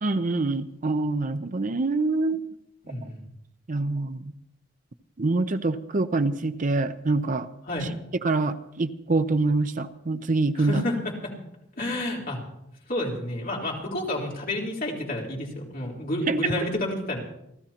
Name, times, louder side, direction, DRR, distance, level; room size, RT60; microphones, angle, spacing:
voice 1, 0.0-2.4 3.7-4.2 5.2-7.5 8.2-10.8 16.3-16.4, right 3 dB, 40° right, 10 dB, 0.6 m, -25 dB
voice 2, 2.8-3.2 7.6-7.9 10.5-11.3 11.8-12.4 12.9-17.2, left 1 dB, 45° left, -3 dB, 3.7 m, -30 dB
28.5 x 13.0 x 2.9 m, 0.81 s
head